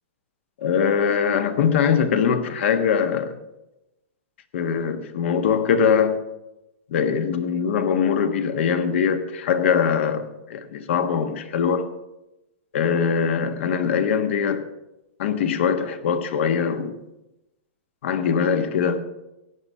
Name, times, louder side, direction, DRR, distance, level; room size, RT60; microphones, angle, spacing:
voice 1, 0.6-3.4 4.5-6.2 6.9-11.9 12.7-14.6 15.2-17.0 18.0-19.0, left 7 dB, 60° left, 1.4 m, -22 dB
15.0 x 9.4 x 5.5 m
hypercardioid pair, 150°, 7 cm